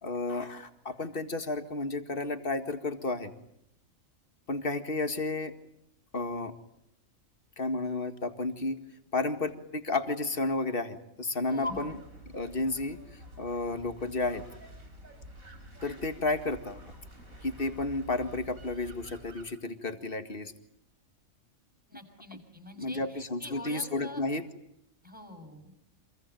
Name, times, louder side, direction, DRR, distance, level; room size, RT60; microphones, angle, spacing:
voice 1, 0.0-3.3 4.5-5.5 6.1-6.5 7.6-8.8 9.1-11.9 12.3-14.5 15.8-16.8 17.4-20.5 22.8-24.4, left 2 dB, 40° left, 8 dB, 2.1 m, -32 dB
voice 2, 11.5-11.9 21.9-24.2 25.0-25.7, left 2 dB, 5° right, 6 dB, 6.0 m, -42 dB
sound 1, 11.6-19.4, equal, 90° right, 5.6 m, -49 dB
27.0 x 22.5 x 9.2 m, 0.78 s
omnidirectional pair, 1.4 m